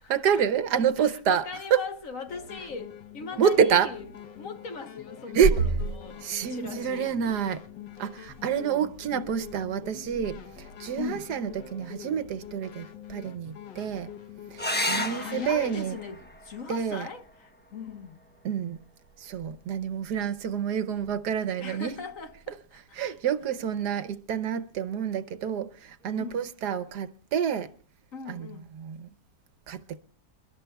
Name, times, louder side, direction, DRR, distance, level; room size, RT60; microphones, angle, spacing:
voice 1, 0.1-1.9 3.4-3.9 5.3-5.7 6.2-7.6 8.0-14.1 14.5-16.0 16.7-17.1 18.4-18.8 19.2-21.9 22.8-27.7 28.3-28.5 28.7-29.1 29.7-30.0, right 7 dB, 70° right, 1.4 m, -28 dB
voice 2, 1.0-4.0 4.4-7.1 11.0-11.3 14.9-18.2 21.6-22.6 23.0-23.1 26.2-26.4 28.1-28.7, left 5 dB, 50° left, 1.4 m, -39 dB
sound 1, 2.3-15.8, left 9 dB, 80° left, 1.6 m, -45 dB
sound 2, 14.6-19.6 21.5-22.1 25.6-25.7 26.0-26.1, left 1 dB, 15° left, 0.4 m, -36 dB
29.0 x 12.5 x 2.3 m
omnidirectional pair, 1.9 m